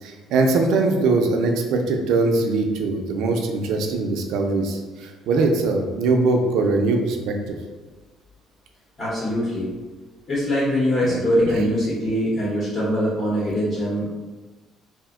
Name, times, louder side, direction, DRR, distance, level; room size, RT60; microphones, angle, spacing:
voice 1, 0.0-7.5 11.0-11.2 11.5-11.6, right 3 dB, 70° right, 3 dB, 0.4 m, -22 dB
voice 2, 9.0-9.7 10.3-14.1, equal, 35° left, -8 dB, 0.8 m, -22 dB
2.6 x 2.1 x 3.6 m, 1.2 s
cardioid pair, 165°, 0 cm